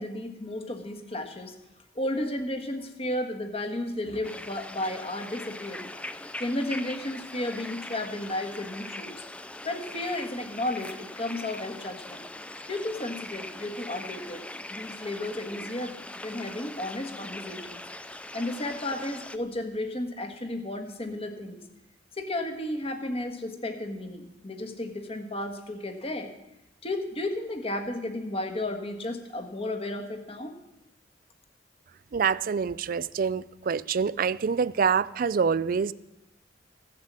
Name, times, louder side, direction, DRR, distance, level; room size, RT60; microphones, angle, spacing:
voice 1, 0.0-1.5 1.9-5.9 6.4-9.2 9.6-12.2 12.7-14.4 14.7-15.9 16.2-17.8 18.3-21.6 22.1-26.3 26.8-30.6, left 1 dB, 35° left, 6 dB, 1.4 m, -33 dB
sound 1, 4.2-19.4, left 1 dB, 5° left, 0.4 m, -41 dB
voice 2, 32.1-35.9, right 6 dB, 50° right, 19 dB, 0.4 m, -26 dB
15.5 x 7.5 x 7.4 m, 0.93 s
head